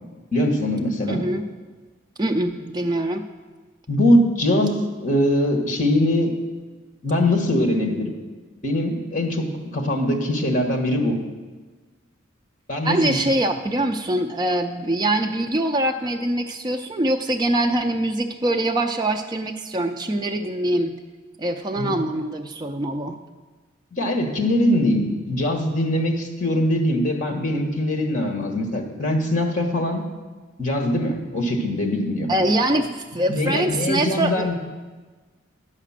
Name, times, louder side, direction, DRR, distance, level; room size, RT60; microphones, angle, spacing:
voice 1, 0.3-1.2 3.9-6.3 7.0-8.1 8.6-11.2 12.7-13.2 21.8-22.0 23.9-30.0 30.6-32.3 33.3-34.5, left 1 dB, 40° left, 3 dB, 1.3 m, -22 dB
voice 2, 1.1-1.5 2.2-3.3 12.8-21.0 21.4-23.2 32.3-34.5, right 1 dB, 20° right, 4 dB, 0.4 m, -23 dB
11.0 x 5.0 x 7.3 m, 1.3 s
head